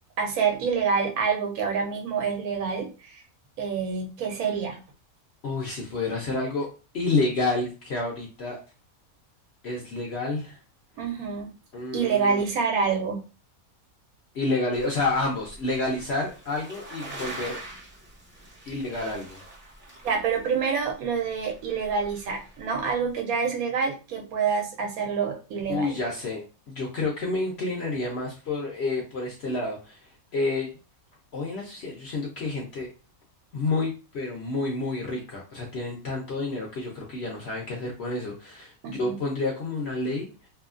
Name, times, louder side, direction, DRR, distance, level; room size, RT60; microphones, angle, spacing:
voice 1, 0.2-3.2 3.6-4.8 11.0-11.5 11.9-13.2 20.0-26.0 38.8-39.2, right 6 dB, 80° right, 2 dB, 1.2 m, -27 dB
voice 2, 5.4-8.6 9.6-10.6 11.7-12.5 14.3-17.6 18.7-19.4 25.7-30.0 30.3-30.7 31.3-32.9 33.5-40.3, left 3 dB, 60° left, -1 dB, 0.8 m, -29 dB
sound 1, 14.7-23.1, right 2 dB, 15° right, 0.5 m, -44 dB
2.7 x 2.3 x 2.4 m, 0.32 s
omnidirectional pair, 1.5 m